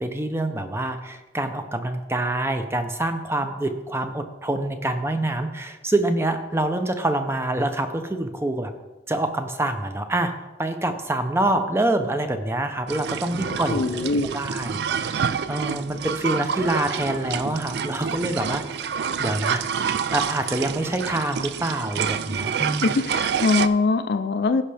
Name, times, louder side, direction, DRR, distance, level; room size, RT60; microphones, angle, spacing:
voice 1, 0.0-8.7 9.1-10.3 10.6-18.6 18.9-19.7 20.1-22.9, right 1 dB, 15° right, 7 dB, 0.5 m, -26 dB
sound 1, 12.9-23.7, right 7 dB, 65° right, 0.3 m, -28 dB
voice 2, 13.7-14.3 22.8-24.6, left 3 dB, 60° left, 10 dB, 0.4 m, -22 dB
15.5 x 5.7 x 3.4 m, 1.1 s
head